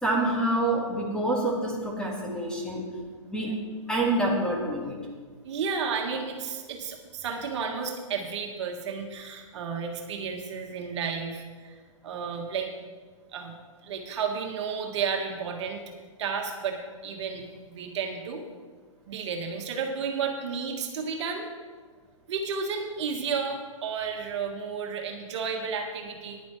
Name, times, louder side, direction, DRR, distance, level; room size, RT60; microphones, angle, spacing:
voice 1, 0.0-2.9 3.2-3.6 3.9-5.0, right 1 dB, 5° left, -3 dB, 2.2 m, -27 dB
voice 2, 5.4-11.8 12.0-12.7 13.3-13.5 13.8-15.8 16.2-18.4 19.1-21.5 22.3-26.4, right 5 dB, 55° right, 2 dB, 1.9 m, -32 dB
15.5 x 10.5 x 3.4 m, 1.5 s
hypercardioid pair, 130°, 17 cm